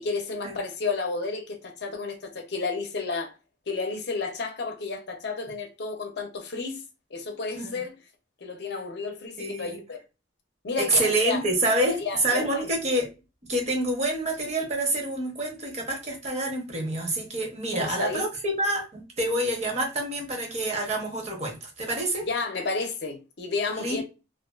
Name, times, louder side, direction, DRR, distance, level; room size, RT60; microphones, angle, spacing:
voice 1, 0.0-3.3 3.7-6.8 7.1-7.9 8.4-10.0 10.6-11.4 11.8-12.7 17.7-18.2 22.3-24.0, left 4 dB, 65° left, 0.6 m, -31 dB
voice 2, 9.4-9.8 10.8-13.1 13.5-22.3 23.8-24.0, right 1 dB, 40° right, 0.8 m, -27 dB
2.4 x 2.3 x 2.3 m
head